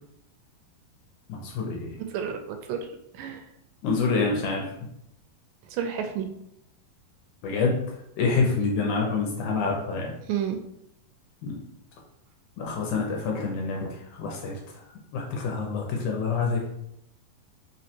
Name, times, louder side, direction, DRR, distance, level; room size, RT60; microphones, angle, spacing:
voice 1, 1.3-2.0 3.8-4.7 7.4-7.8 8.2-10.1 11.4-11.6 12.6-14.6 15.1-16.7, left 4 dB, 75° left, 0 dB, 1.9 m, -27 dB
voice 2, 2.1-2.9 3.1-3.5 5.7-6.3 10.3-10.6, right 8 dB, 85° right, 6 dB, 2.2 m, -30 dB
5.2 x 3.1 x 2.8 m, 0.77 s
omnidirectional pair, 3.9 m